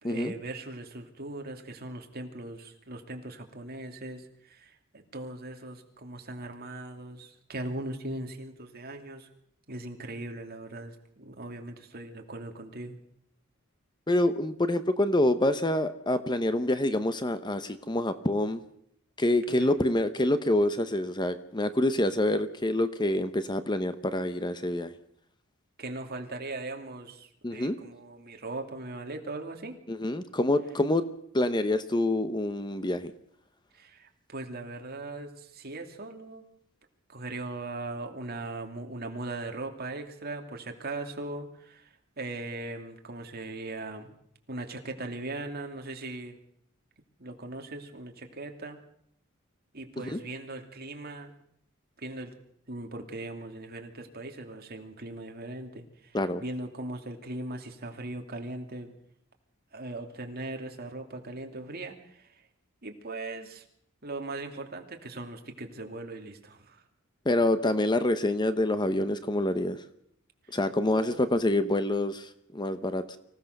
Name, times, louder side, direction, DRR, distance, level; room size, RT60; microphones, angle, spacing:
voice 1, 0.0-9.3 9.7-13.0 19.5-19.8 25.8-29.7 33.7-36.5 37.1-44.1 44.5-46.4 47.2-48.8 49.7-51.3 52.0-52.3 52.7-58.9 59.7-62.4 62.8-63.6 64.0-66.8 70.5-70.6 70.8-71.3, right 2 dB, 45° right, 4 dB, 2.7 m, -39 dB
voice 2, 14.1-18.6 19.2-24.9 27.4-27.8 29.9-31.0 31.3-33.1 50.1-50.2 56.1-56.4 67.2-69.8 70.5-73.2, left 1 dB, 20° left, 11 dB, 0.9 m, -26 dB
25.0 x 16.5 x 6.7 m, 0.71 s
head